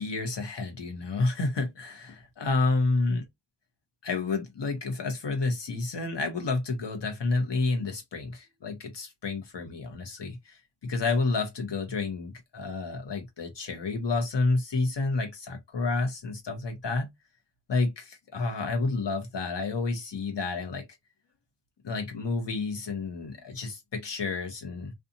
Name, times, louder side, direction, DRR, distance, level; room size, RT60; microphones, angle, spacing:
voice 1, 0.0-3.2 4.0-17.1 17.7-20.8 21.8-24.9, left 3 dB, 80° left, 0.8 m, -30 dB
2.6 x 2.3 x 2.6 m
wide cardioid pair, 45°, 41 cm